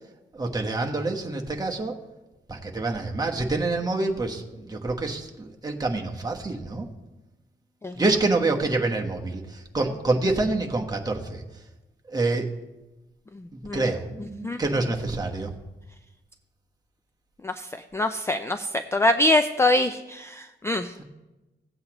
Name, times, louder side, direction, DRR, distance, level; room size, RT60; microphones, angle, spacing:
voice 1, 0.3-1.9 2.5-6.9 7.9-11.4 12.1-12.5 13.5-15.5, right 2 dB, 20° right, 1 dB, 1.0 m, -27 dB
voice 2, 13.3-13.8 14.4-14.6 17.4-21.0, left 1 dB, 15° left, 8 dB, 0.3 m, -24 dB
17.0 x 7.9 x 3.0 m, 1.1 s
wide cardioid pair, 145°, 20 cm